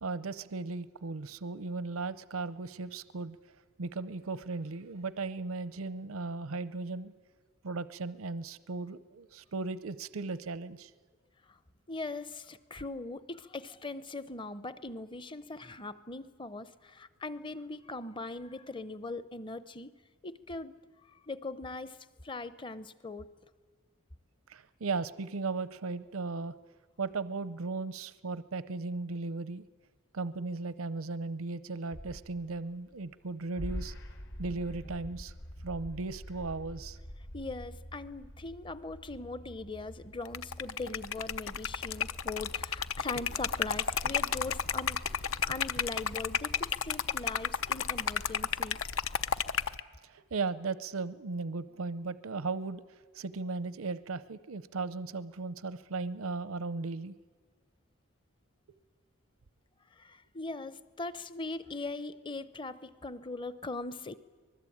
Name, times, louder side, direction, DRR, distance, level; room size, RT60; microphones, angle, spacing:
voice 1, 0.0-3.4 3.8-7.1 7.6-10.9 24.5-26.5 27.0-29.6 30.1-33.9 34.4-35.3 35.6-37.0 50.0-52.8 53.1-57.1, right 3 dB, 90° right, 16 dB, 0.7 m, -36 dB
voice 2, 11.9-19.9 20.2-23.4 37.3-45.0 45.5-48.8 59.9-64.1, left 3 dB, 25° left, 15 dB, 0.7 m, -40 dB
sound 1, 31.9-33.3 33.6-46.6, equal, 55° left, 1.5 m, -47 dB
Liquid, 40.2-49.8, left 7 dB, 80° left, 0.7 m, -32 dB
25.0 x 20.0 x 8.6 m, 1.5 s
head